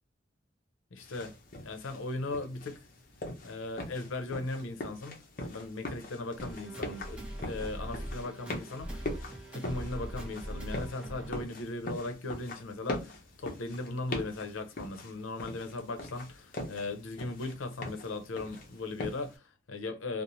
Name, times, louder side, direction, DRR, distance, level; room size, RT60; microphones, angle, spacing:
voice 1, 0.9-1.3 1.6-2.8 3.4-5.2 5.4-9.1 9.5-20.2, left 2 dB, 90° left, 0.6 m, -38 dB
sound 1, 1.0-19.4, left 1 dB, 45° left, 0.6 m, -42 dB
sound 2, 6.4-11.5, equal, 5° right, 0.7 m, -41 dB
3.0 x 2.0 x 2.6 m
head